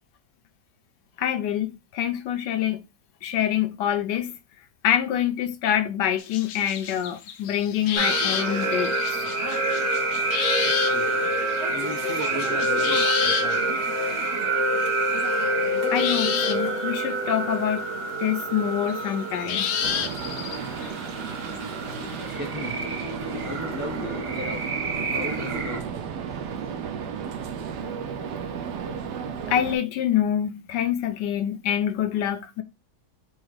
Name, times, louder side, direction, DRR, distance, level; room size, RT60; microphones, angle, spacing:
voice 1, 1.2-2.9 3.2-4.3 4.8-9.2 15.9-17.8 18.2-19.7 26.9-27.0 29.5-32.6, left 10 dB, 85° left, 1.3 m, -26 dB
sound 1, 6.2-13.6 14.6-14.9 15.2-15.3 15.9-16.9 18.9-21.6 22.0-22.1, left 8 dB, 65° left, 0.8 m, -30 dB
sound 2, 8.0-25.8, right 2 dB, 40° right, 1.1 m, -27 dB
voice 2, 10.6-14.3 21.5-24.6 25.1-26.2 26.5-26.8, left 1 dB, 10° right, 0.4 m, -38 dB
sound 3, 19.8-29.8, right 7 dB, 90° right, 1.3 m, -34 dB
4.2 x 2.4 x 4.6 m
omnidirectional pair, 1.8 m